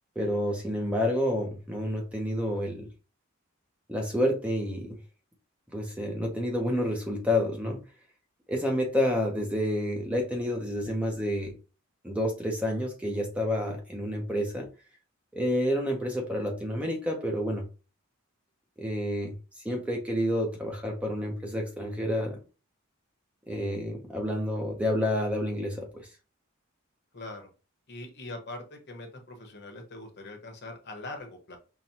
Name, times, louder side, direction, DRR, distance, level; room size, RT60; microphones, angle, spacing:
voice 1, 0.2-2.9 3.9-5.0 5.7-7.8 8.5-11.5 12.0-14.7 15.3-17.7 18.8-22.4 23.5-26.1, left 1 dB, 5° right, 1 dB, 0.5 m, -29 dB
voice 2, 27.1-27.5 27.9-31.6, left 2 dB, 50° left, 4 dB, 0.9 m, -42 dB
5.7 x 2.1 x 2.7 m, 0.33 s
head